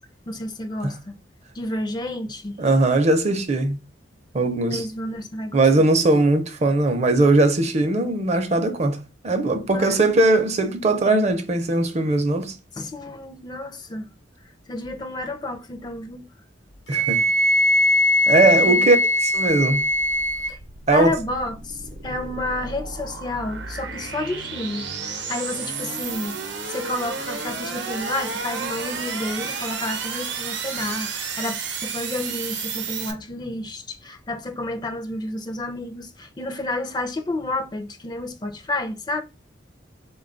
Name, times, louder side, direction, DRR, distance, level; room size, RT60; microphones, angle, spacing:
voice 1, 0.3-1.2 1.5-2.6 4.7-5.7 9.7-10.1 12.8-14.1 14.7-16.3 18.6-19.0 20.5-20.6 20.9-26.3 26.7-39.2, left 2 dB, 25° left, 0.4 m, -30 dB
voice 2, 2.6-3.8 4.3-4.9 5.5-9.0 9.2-12.6 16.9-17.2 18.3-19.0 19.2-19.8 20.9-21.2, right 2 dB, 40° right, 0.5 m, -19 dB
Wind instrument woodwind instrument, 16.9-20.6, left 1 dB, 75° left, 0.8 m, -20 dB
sound 1, 19.3-33.1, right 5 dB, 80° right, 0.7 m, -32 dB
3.7 x 2.3 x 3.8 m
head